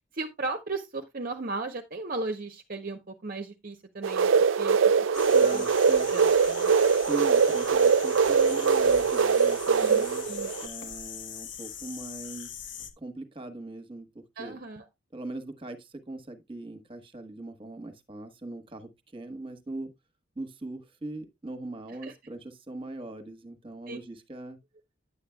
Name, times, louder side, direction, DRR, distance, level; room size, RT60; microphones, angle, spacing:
voice 1, 0.1-4.3 4.6-4.8 5.2-5.6 6.1-6.7 9.7-10.5 14.4-14.8 22.0-22.1 23.9-24.0, right 3 dB, 45° right, 0.7 m, -36 dB
sound 1, 4.0-10.7, right 5 dB, 80° right, 0.5 m, -22 dB
sound 2, 5.1-12.9, left 8 dB, 65° left, 1.2 m, -42 dB
voice 2, 5.3-6.1 7.1-10.3 10.6-12.5 13.0-14.1 14.4-14.6 15.1-19.9 20.4-24.6, right 2 dB, 25° right, 1.2 m, -40 dB
10.0 x 8.3 x 2.2 m
head